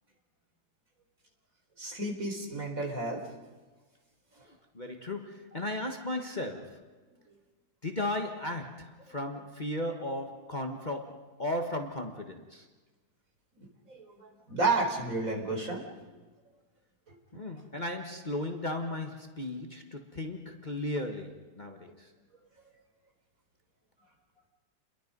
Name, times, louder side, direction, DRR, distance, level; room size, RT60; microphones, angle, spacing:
voice 1, 1.8-3.2 13.9-15.8, right 3 dB, 55° right, 4.5 m, -31 dB
voice 2, 4.4-6.9 7.8-12.7 17.3-22.1, left 1 dB, 30° left, 1.5 m, -36 dB
30.0 x 22.0 x 5.4 m
omnidirectional pair, 1.7 m